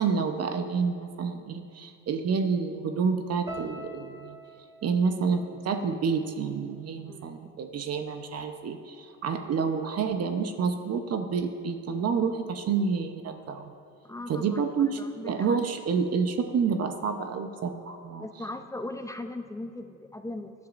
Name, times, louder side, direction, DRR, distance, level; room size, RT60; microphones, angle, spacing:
voice 1, 0.0-4.4 4.8-13.7 14.3-18.3, right 5 dB, 45° right, 7 dB, 0.9 m, -29 dB
sound 1, 3.5-7.7 7.9-8.7 9.3-9.5, right 1 dB, 10° right, 1.5 m, -47 dB
voice 2, 14.0-14.6 15.0-15.6 18.2-20.5, left 2 dB, 10° left, 7 dB, 0.6 m, -38 dB
18.0 x 10.5 x 2.6 m, 2.5 s
supercardioid pair, 85°, 34 cm